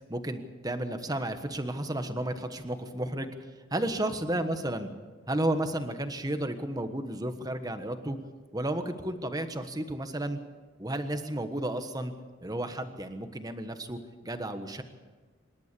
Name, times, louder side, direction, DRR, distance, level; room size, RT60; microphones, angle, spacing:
voice 1, 0.1-3.3 3.7-4.9 5.3-8.2 8.5-10.4 10.8-12.1 12.4-14.8, right 1 dB, 20° right, 8 dB, 1.3 m, -32 dB
26.0 x 12.0 x 8.4 m, 1.4 s
head